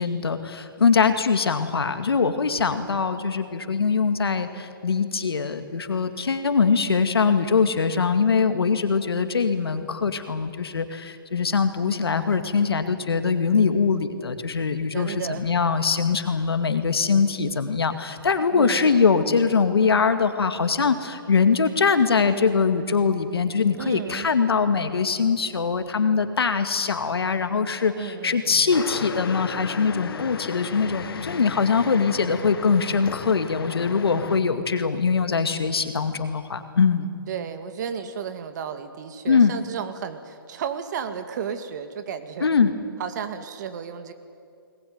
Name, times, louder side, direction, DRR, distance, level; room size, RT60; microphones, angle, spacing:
voice 1, 0.0-37.1 39.3-39.6 42.4-42.7, left 5 dB, 90° left, 8 dB, 2.2 m, -22 dB
voice 2, 14.9-15.4 18.5-18.9 19.2-19.3 23.8-24.3 28.0-28.8 37.3-42.5 43.0-44.1, right 7 dB, 50° right, 8 dB, 2.1 m, -33 dB
sound 1, 28.7-34.4, left 6 dB, 70° left, 1.6 m, -35 dB
20.5 x 20.0 x 9.6 m, 2.4 s
hypercardioid pair, 150°, 13 cm